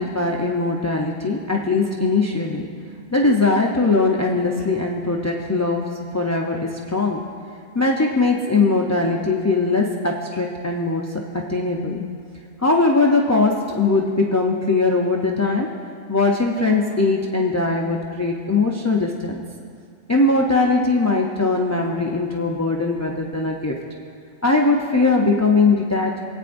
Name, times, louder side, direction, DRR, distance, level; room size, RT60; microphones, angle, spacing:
voice 1, 0.0-2.7 3.1-7.3 7.7-12.0 12.6-15.7 16.1-19.4 20.1-23.8 24.4-26.2, left 3 dB, 25° left, -1 dB, 0.4 m, -20 dB
22.5 x 8.7 x 2.6 m, 2.3 s
omnidirectional pair, 1.3 m